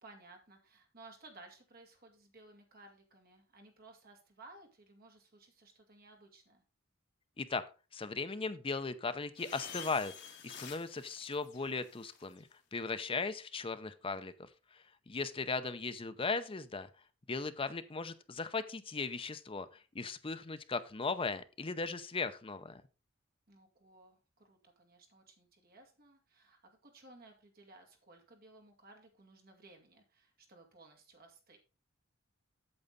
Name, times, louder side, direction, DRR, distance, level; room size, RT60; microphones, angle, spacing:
voice 1, 0.0-6.6 23.5-31.6, right 2 dB, 50° right, 3 dB, 2.3 m, -58 dB
voice 2, 7.9-10.1 10.4-12.4 12.7-14.5 15.1-16.9 17.3-22.8, left 4 dB, 30° left, 11 dB, 0.7 m, -37 dB
sound 1, 9.4-12.4, left 8 dB, 60° left, 1.9 m, -49 dB
8.7 x 7.0 x 4.0 m, 0.32 s
head